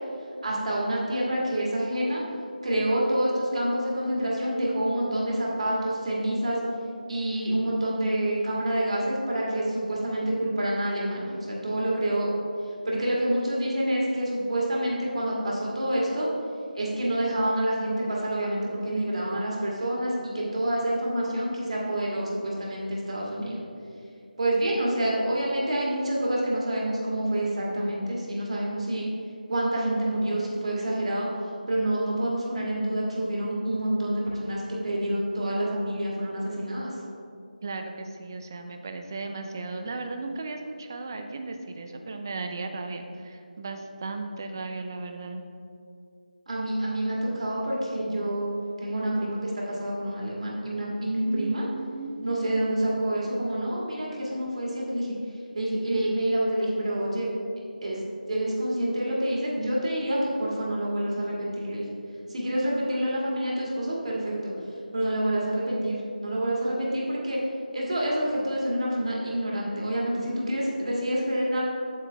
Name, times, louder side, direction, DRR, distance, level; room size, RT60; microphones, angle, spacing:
voice 1, 0.4-2.2 2.6-6.6 7.1-12.3 12.9-16.3 16.7-23.6 24.4-29.1 29.5-31.3 31.7-36.9 46.5-48.5 48.8-51.6 52.2-55.1 55.5-57.4 57.8-58.0 58.3-61.9 62.3-64.5 64.9-67.4 67.7-71.6, right 1 dB, 45° right, -4 dB, 2.0 m, -27 dB
voice 2, 37.6-45.4 51.3-52.3, right 3 dB, 25° right, 5 dB, 0.5 m, -36 dB
8.1 x 7.5 x 3.4 m, 2.5 s
figure-of-eight pair, 170°, 5 cm